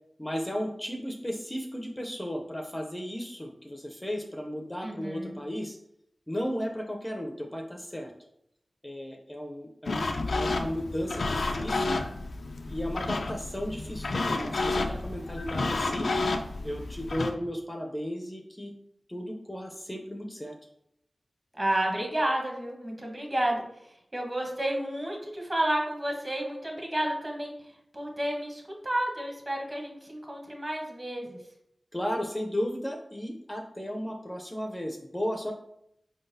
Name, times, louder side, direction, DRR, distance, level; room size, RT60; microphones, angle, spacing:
voice 1, 0.2-5.8 6.3-8.1 8.8-12.0 12.6-16.1 16.6-18.7 19.1-20.5 31.9-35.5, equal, 15° left, 3 dB, 0.5 m, -34 dB
voice 2, 4.8-5.3 21.5-23.6 24.1-27.5 27.9-31.4, right 1 dB, 30° right, 1 dB, 1.0 m, -31 dB
sound 1, 9.9-17.3, left 3 dB, 80° left, 0.4 m, -31 dB
4.6 x 3.9 x 2.6 m, 0.77 s
wide cardioid pair, 65°, 0 cm